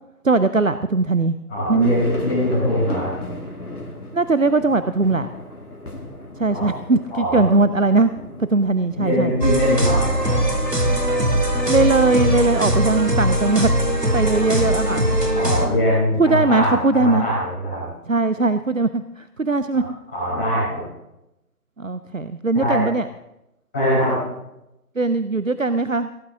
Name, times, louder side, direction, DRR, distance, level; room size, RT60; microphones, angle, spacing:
voice 1, 0.2-1.4 1.7-1.9 4.1-5.3 6.4-8.1 8.4-9.3 11.7-13.7 14.1-15.1 16.2-17.3 18.1-19.8 21.8-23.1 25.0-26.1, right 3 dB, 55° right, 12 dB, 0.6 m, -19 dB
voice 2, 1.5-3.2 6.5-6.7 7.1-7.5 8.9-10.4 15.3-17.8 19.7-19.8 20.1-20.8 22.5-22.8 23.7-24.2, equal, 10° left, -11 dB, 4.4 m, -22 dB
sound 1, 1.8-14.5, left 1 dB, 70° left, 2.5 m, -38 dB
sound 2, 9.4-15.7, right 1 dB, 90° right, 2.7 m, -20 dB
16.5 x 15.0 x 3.6 m, 0.89 s
figure-of-eight pair, 170°, 47 cm